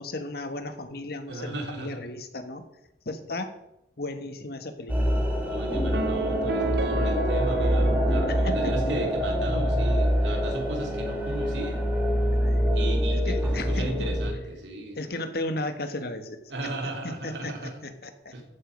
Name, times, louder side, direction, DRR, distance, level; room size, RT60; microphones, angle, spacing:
voice 1, 0.0-2.6 3.0-3.5 4.0-5.1 8.3-8.8 12.3-12.7 13.2-14.1 15.0-16.4 17.0-17.5 17.8-18.3, left 2 dB, 60° left, 7 dB, 1.5 m, -35 dB
voice 2, 1.3-2.0 5.4-11.8 12.7-15.0 16.5-17.9 18.3-18.4, right 1 dB, 90° right, 2 dB, 3.0 m, -35 dB
sound 1, 4.9-14.3, equal, 10° right, 2.7 m, -25 dB
sound 2, 5.9-9.4, right 4 dB, 65° right, 0.9 m, -32 dB
14.5 x 8.6 x 5.2 m, 0.85 s
head